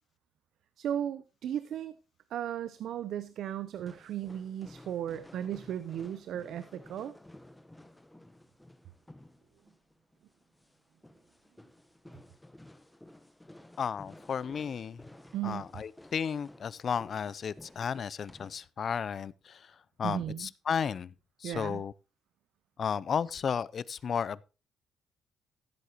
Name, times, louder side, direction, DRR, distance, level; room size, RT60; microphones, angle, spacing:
voice 1, 0.8-2.0 2.3-7.1 15.3-15.7 20.0-20.5 21.4-21.8, right 10 dB, 75° right, 0.6 m, -36 dB
sound 1, 3.8-18.7, left 1 dB, 10° left, 1.0 m, -54 dB
voice 2, 13.8-15.0 15.4-19.7 20.0-21.1 21.4-21.9 22.8-24.4, left 7 dB, 50° left, 0.4 m, -33 dB
15.0 x 8.2 x 2.9 m
cardioid pair, 90°, 0 cm